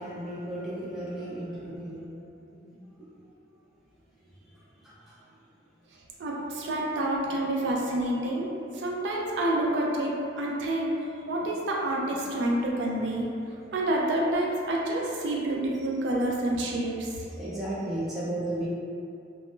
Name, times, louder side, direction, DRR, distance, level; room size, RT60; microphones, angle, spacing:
voice 1, 0.0-2.7 4.8-5.2 13.5-13.6 17.3-18.7, right 1 dB, ahead, -10 dB, 0.5 m, -35 dB
voice 2, 6.2-13.3 13.7-17.3, right 1 dB, 75° right, -3 dB, 0.4 m, -28 dB
2.1 x 2.0 x 3.0 m, 2.6 s
head